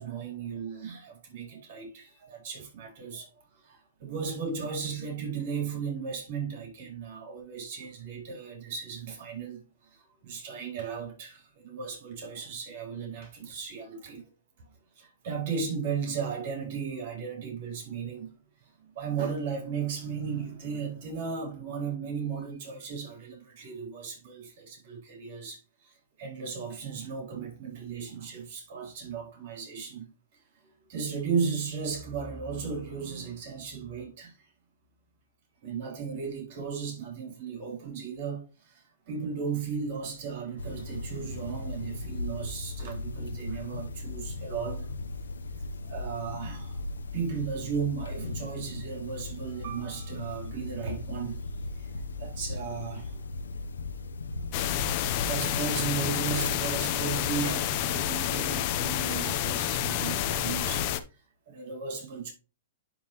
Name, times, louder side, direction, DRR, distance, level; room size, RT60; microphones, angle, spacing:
voice 1, 0.0-3.3 3.6-9.6 9.9-14.2 15.0-18.3 18.8-30.1 30.9-34.4 35.6-44.9 45.9-46.8 47.1-51.4 51.8-53.2 55.2-60.9 61.5-62.3, right 6 dB, 55° right, 3.6 m, -35 dB
sound 1, 40.6-56.6, left 3 dB, 90° left, 0.9 m, -38 dB
sound 2, 54.5-61.0, left 11 dB, 45° left, 0.8 m, -29 dB
11.5 x 3.9 x 3.0 m
hypercardioid pair, 130°, 0 cm